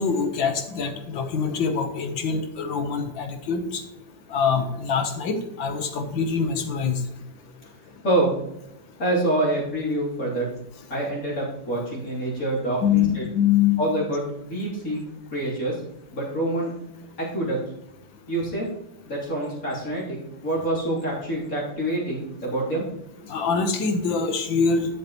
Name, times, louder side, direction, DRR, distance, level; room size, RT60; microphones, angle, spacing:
voice 1, 0.0-3.8 4.3-7.0 12.8-13.1 13.4-13.8 23.3-24.9, left 6 dB, 70° left, 6 dB, 1.8 m, -24 dB
voice 2, 8.0-8.3 9.0-10.5 10.9-13.2 13.8-15.0 15.3-15.8 16.1-16.7 17.2-17.6 18.3-18.7 19.1-22.8, right 1 dB, 40° left, -6 dB, 3.7 m, -26 dB
12.0 x 8.0 x 3.1 m, 0.87 s
omnidirectional pair, 2.2 m